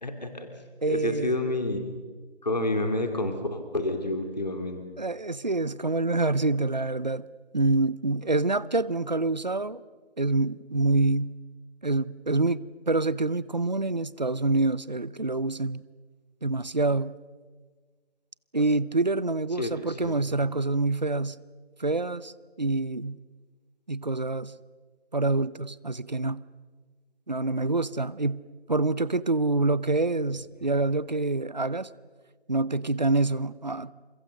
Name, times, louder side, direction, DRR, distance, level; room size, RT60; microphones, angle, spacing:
voice 1, 0.0-0.5 0.9-1.8 2.4-4.8 19.5-20.1, left 2 dB, 40° left, 2.7 m, -29 dB
voice 2, 0.8-1.4 5.0-7.3 7.5-9.8 10.2-11.3 11.8-15.8 16.4-17.2 18.5-21.4 21.8-23.2 23.9-24.6 25.1-26.4 27.3-28.4 28.7-31.9 32.5-33.9, right 2 dB, 45° right, 0.7 m, -26 dB
29.0 x 27.5 x 6.5 m
figure-of-eight pair, 175°, 32 cm